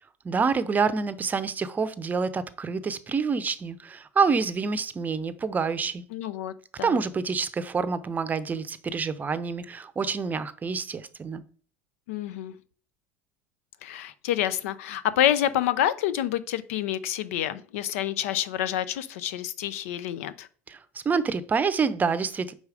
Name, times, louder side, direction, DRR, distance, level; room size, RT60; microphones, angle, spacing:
voice 1, 0.2-6.0 6.8-11.4 20.7-20.8 21.0-22.5, right 5 dB, 20° right, 15 dB, 0.7 m, -27 dB
voice 2, 6.1-7.0 12.1-12.6 13.8-20.5, left 11 dB, 75° left, 15 dB, 0.6 m, -28 dB
5.4 x 4.8 x 4.9 m, 0.42 s
hypercardioid pair, 95°, 8 cm